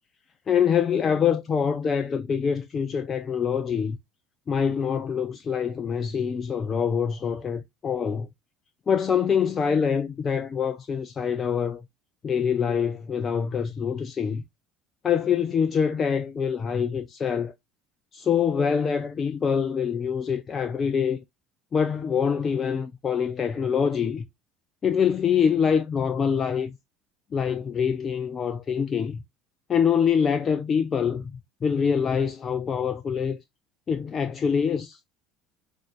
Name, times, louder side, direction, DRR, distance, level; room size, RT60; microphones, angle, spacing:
voice 1, 0.5-4.0 4.5-8.3 8.9-11.8 12.2-14.4 15.0-17.5 18.1-21.2 21.7-24.3 24.8-26.7 27.3-29.2 29.7-31.3 31.6-33.4 33.9-35.0, left 7 dB, 35° left, 0.5 m, -25 dB
6.1 x 2.7 x 2.4 m
hypercardioid pair, 65°, 0 cm